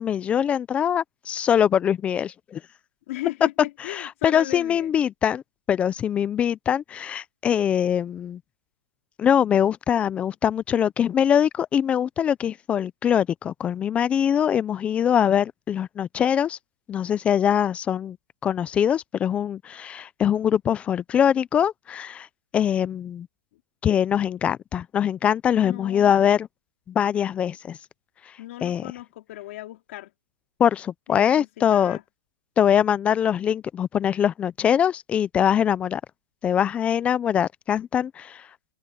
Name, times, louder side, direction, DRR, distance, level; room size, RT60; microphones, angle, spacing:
voice 1, 0.0-2.6 3.9-5.4 5.7-8.4 9.2-16.6 16.9-18.2 18.4-22.3 22.5-23.3 23.8-26.5 26.9-27.8 28.6-28.8 30.6-32.0 32.6-36.0 36.4-38.5, left 9 dB, 15° left, 0.4 m, -23 dB
voice 2, 3.1-4.9 25.5-26.1 28.4-30.1 31.1-32.0, left 17 dB, 45° left, 2.9 m, -36 dB
open air
hypercardioid pair, 155°, 9 cm